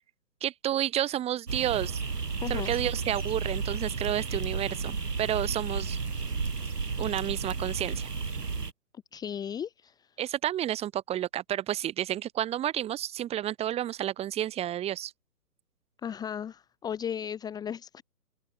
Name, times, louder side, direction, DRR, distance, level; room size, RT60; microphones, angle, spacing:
voice 1, 0.4-2.0 2.5-6.0 7.0-8.1 10.2-15.1, right 12 dB, 10° right, 4.6 m, -31 dB
sound 1, 1.5-8.7, right 4 dB, 75° right, 4.1 m, -32 dB
voice 2, 2.4-2.7 9.1-10.1 16.0-18.0, left 8 dB, 10° left, 2.5 m, -35 dB
open air
figure-of-eight pair, 140°, 48 cm